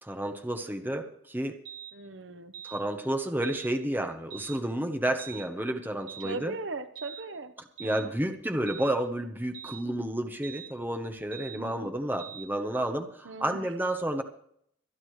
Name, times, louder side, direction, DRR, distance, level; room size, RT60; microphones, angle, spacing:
voice 1, 0.0-1.6 2.6-6.5 7.8-14.2, right 1 dB, 10° right, 6 dB, 0.9 m, -31 dB
sound 1, 1.6-1.9 2.5-2.8 3.4-3.7 4.3-4.6 5.2-5.5 6.1-6.4 6.9-7.2 7.8-8.1 8.7-8.9 9.5-9.8 10.4-10.7 11.3-11.6 12.2-12.5, right 9 dB, 85° right, 1.4 m, -43 dB
voice 2, 1.9-2.5 6.2-7.5 7.8-8.2 11.5-11.9 13.2-13.7, right 3 dB, 70° right, 10 dB, 0.9 m, -39 dB
25.0 x 9.6 x 3.2 m, 0.68 s
head